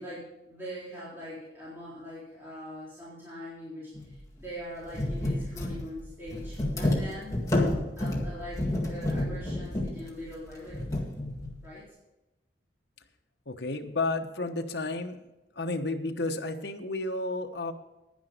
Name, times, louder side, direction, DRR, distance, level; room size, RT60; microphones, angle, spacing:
voice 1, 0.0-7.3 8.0-11.0 11.6-11.8, equal, 10° right, -9 dB, 3.9 m, -42 dB
sound 1, 3.9-4.1 4.4-4.5 4.9-11.6, left 1 dB, 20° left, 1.9 m, -30 dB
voice 2, 13.5-15.2 15.6-17.7, left 2 dB, 70° left, 5 dB, 1.1 m, -32 dB
10.5 x 10.5 x 5.2 m, 0.97 s
head